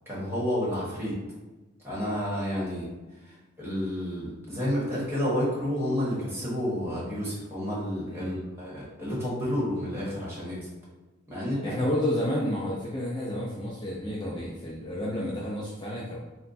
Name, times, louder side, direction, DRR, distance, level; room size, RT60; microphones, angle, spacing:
voice 1, 0.1-1.2 1.8-2.9 3.2-10.6 11.3-11.7, equal, 10° right, -8 dB, 1.4 m, -30 dB
voice 2, 8.1-8.4 11.6-16.2, left 1 dB, 25° left, -5 dB, 0.5 m, -30 dB
4.2 x 2.2 x 4.1 m, 1.2 s
head